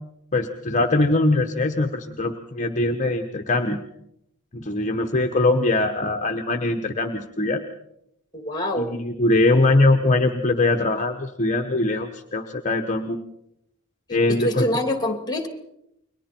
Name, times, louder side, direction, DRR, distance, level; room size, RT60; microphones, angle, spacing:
voice 1, 0.3-3.8 4.5-7.6 8.8-13.2 14.1-14.7, left 2 dB, 35° left, 6 dB, 1.1 m, -22 dB
voice 2, 8.3-8.9 14.3-15.5, left 1 dB, 20° left, 7 dB, 2.7 m, -25 dB
29.5 x 23.0 x 4.5 m, 0.79 s
head